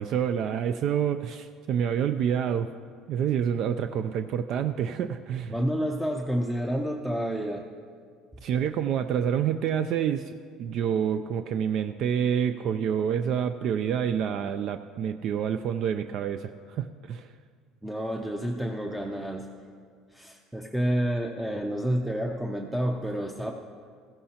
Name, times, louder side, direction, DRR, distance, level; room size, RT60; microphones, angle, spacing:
voice 1, 0.0-2.7 3.1-5.6 8.4-17.3, right 8 dB, 55° right, 9 dB, 0.3 m, -28 dB
voice 2, 5.5-7.7 17.8-19.5 20.1-23.5, equal, 5° right, 2 dB, 0.6 m, -29 dB
15.0 x 14.0 x 2.9 m, 2.1 s
cardioid pair, 130°, 0 cm